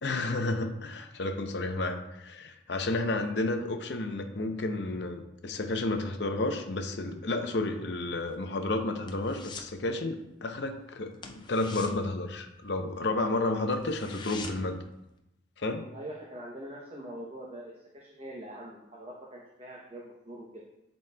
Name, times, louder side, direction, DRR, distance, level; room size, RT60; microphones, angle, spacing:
voice 1, 0.0-14.8 15.6-15.8, left 2 dB, 65° left, 6 dB, 0.6 m, -31 dB
sound 1, 8.2-9.8 10.1-10.4 10.6-10.8 11.1-13.0 13.4-13.5 13.7-14.8 15.2-15.3, left 4 dB, 25° left, 0.4 m, -45 dB
voice 2, 15.9-20.4, right 1 dB, 30° right, -3 dB, 0.8 m, -43 dB
10.5 x 4.1 x 2.3 m, 0.88 s
head